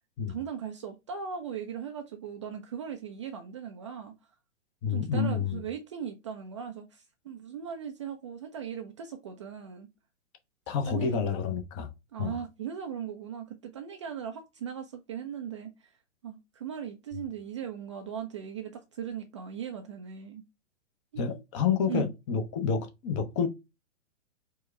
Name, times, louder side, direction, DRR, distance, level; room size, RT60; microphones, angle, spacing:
voice 1, 0.3-4.1 4.9-9.9 10.8-11.2 12.1-15.9 16.2-20.4 21.1-21.4 21.9-22.1, right 8 dB, 25° right, 0.4 m, -38 dB
voice 2, 4.8-5.6 10.7-11.9 12.2-12.4 21.2-23.5, left 6 dB, 25° left, 0.7 m, -29 dB
4.6 x 2.1 x 4.4 m
figure-of-eight pair, 115°, 37 cm